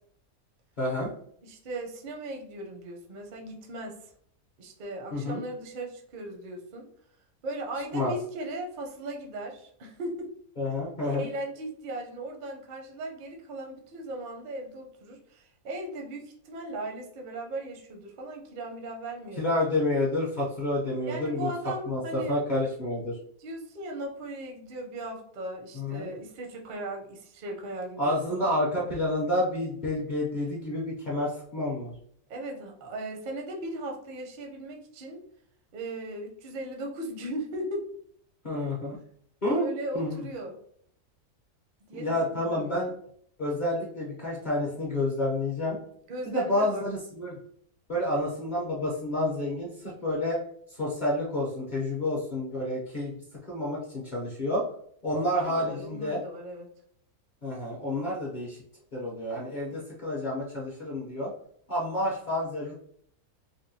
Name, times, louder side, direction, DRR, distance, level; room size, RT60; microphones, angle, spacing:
voice 1, 0.8-1.1 5.1-5.4 7.9-8.1 10.6-11.3 19.4-21.5 21.9-23.2 25.7-26.1 28.0-31.9 38.4-39.0 39.4-39.7 39.9-40.2 41.9-42.9 43.4-45.8 46.3-47.4 47.9-49.7 50.0-50.4 50.7-53.1 53.5-54.6 55.0-56.2 57.4-58.6 58.9-61.3 61.7-62.7, left 1 dB, 45° left, -5 dB, 0.6 m, -29 dB
voice 2, 1.4-4.0 4.6-6.9 7.4-10.3 11.0-19.4 21.1-22.4 23.4-28.5 32.3-35.2 35.7-37.9 38.5-38.6 39.5-40.6 41.9-42.9 46.1-46.8 55.1-56.7, right 1 dB, 55° right, 1 dB, 0.5 m, -37 dB
3.6 x 2.2 x 2.6 m, 0.64 s
omnidirectional pair, 1.6 m